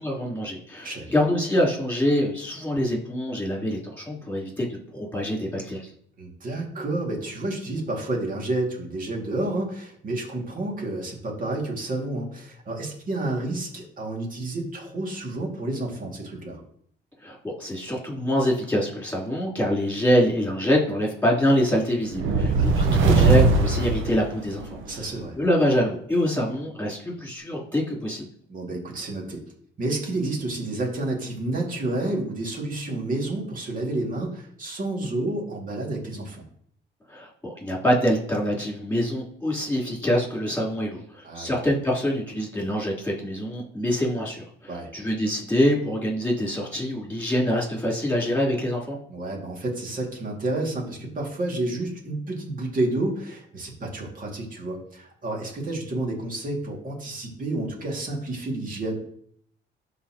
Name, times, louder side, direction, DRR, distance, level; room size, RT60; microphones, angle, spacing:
voice 1, 0.0-5.9 17.2-25.0 25.4-28.3 37.1-49.0, equal, 10° left, -4 dB, 3.3 m, -25 dB
voice 2, 6.2-16.6 22.5-23.0 24.8-25.4 28.5-29.4 29.8-36.4 41.2-41.7 44.7-44.9 49.1-58.9, right 2 dB, 45° right, 0 dB, 2.2 m, -30 dB
sound 1, 22.1-24.8, right 3 dB, 80° right, 0.9 m, -20 dB
12.0 x 4.2 x 2.9 m, 0.64 s
cardioid pair, 90°, 20 cm